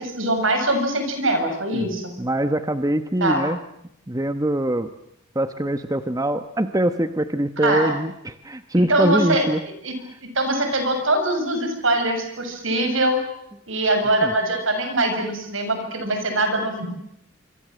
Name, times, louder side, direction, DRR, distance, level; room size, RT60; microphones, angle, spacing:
voice 1, 0.0-2.1 3.2-3.4 7.6-8.0 8.9-9.4 9.8-9.9 10.4-13.2 13.7-16.9, right 1 dB, 75° right, 7 dB, 7.1 m, -22 dB
voice 2, 2.2-3.6 4.1-4.9 5.3-9.6 14.2-14.3, right 1 dB, 15° right, 9 dB, 1.0 m, -23 dB
26.0 x 25.5 x 7.7 m, 0.78 s
head